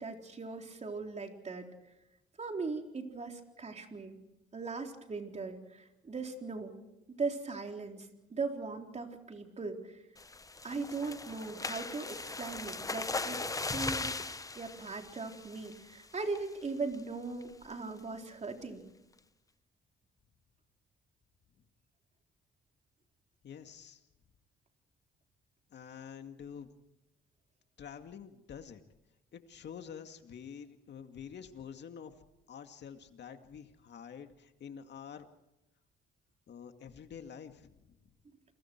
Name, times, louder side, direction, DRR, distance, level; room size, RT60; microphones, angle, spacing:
voice 1, 0.0-1.7 2.4-4.2 4.5-6.7 7.2-10.0 10.6-14.1 14.5-18.8, right 4 dB, 35° right, 3 dB, 3.9 m, -39 dB
sound 1, 10.2-15.9 16.4-16.6 16.9-17.0 17.4-17.7, left 3 dB, 15° left, 0.8 m, -39 dB
voice 2, 23.4-24.0 25.7-26.7 27.8-28.8 29.3-32.1 32.5-35.3 36.5-38.0, left 7 dB, 60° left, 6 dB, 2.3 m, -48 dB
29.0 x 22.0 x 4.7 m, 0.92 s
cardioid pair, 90°, 20 cm